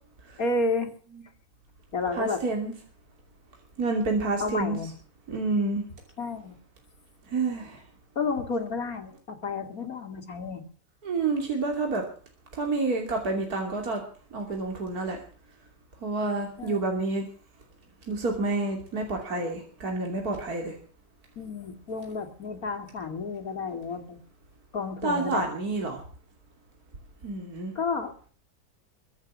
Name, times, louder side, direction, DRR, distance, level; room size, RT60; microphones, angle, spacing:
voice 1, 0.4-0.9 1.9-2.4 4.4-4.9 6.2-6.6 8.2-10.7 16.6-16.8 21.4-24.2 24.7-25.4 27.7-28.3, left 3 dB, 55° left, 6 dB, 2.8 m, -31 dB
voice 2, 2.2-2.7 3.8-4.8 5.3-5.8 7.3-7.8 11.0-12.0 12.6-14.0 14.3-15.2 16.0-17.2 18.1-20.7 25.0-26.0 27.2-27.7, right 3 dB, 60° right, 1 dB, 3.3 m, -28 dB
23.0 x 8.1 x 6.3 m, 0.43 s
omnidirectional pair, 1.9 m